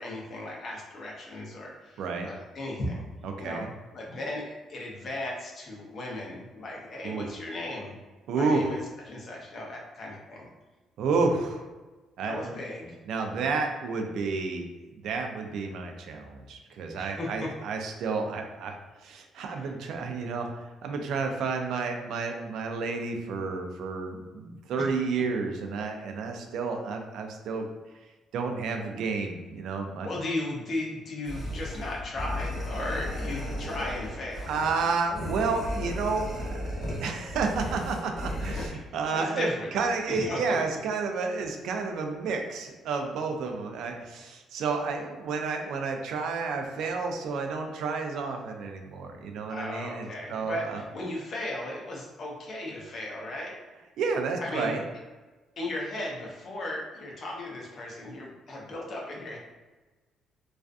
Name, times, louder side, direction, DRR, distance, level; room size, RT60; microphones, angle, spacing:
voice 1, 0.0-3.0 3.4-3.6 3.9-7.9 8.3-8.8 9.1-10.5 12.2-12.9 16.9-17.5 19.5-19.7 24.8-24.9 30.0-34.5 38.5-38.9 39.1-39.7 40.1-40.4 49.5-53.5 54.4-54.7 55.6-59.4, left 1 dB, 45° left, -2 dB, 0.6 m, -36 dB
voice 2, 2.0-2.3 3.2-3.7 7.0-7.2 8.3-8.7 11.0-11.7 12.2-12.6 13.1-14.7 14.9-18.7 19.0-27.7 28.3-30.1 34.5-39.5 39.7-50.8 54.0-54.8, right 4 dB, 75° right, 4 dB, 0.3 m, -31 dB
sound 1, 31.3-38.7, left 1 dB, 20° left, 1.1 m, -35 dB
2.4 x 2.4 x 2.2 m, 1.2 s
cardioid pair, 135°, 0 cm